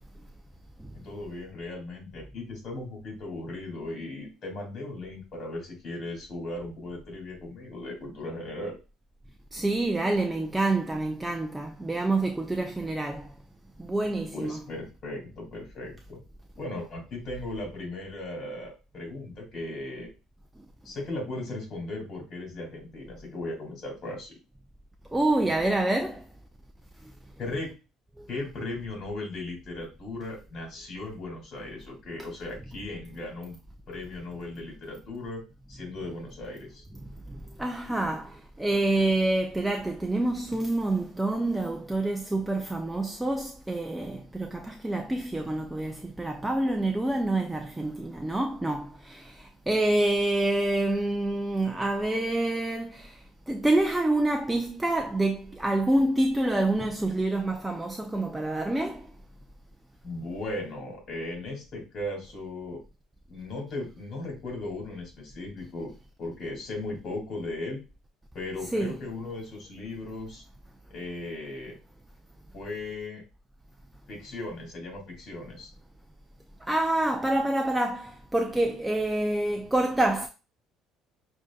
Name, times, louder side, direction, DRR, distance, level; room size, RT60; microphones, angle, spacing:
voice 1, 0.9-8.8 14.3-16.2 16.6-20.1 20.8-24.3 27.4-27.7 28.3-33.6 33.9-35.4 35.7-36.8 60.0-62.8 63.3-65.9 66.2-67.8 68.3-70.4 70.9-71.8 72.5-73.2 74.1-75.7, left 2 dB, 45° left, 2.2 m, -37 dB
voice 2, 9.5-13.3 13.8-14.7 25.1-26.3 28.2-28.3 37.4-59.1 68.7-69.0 76.6-80.3, right 2 dB, 10° right, 0.4 m, -27 dB
6.1 x 2.6 x 2.3 m
cardioid pair, 130°, 0 cm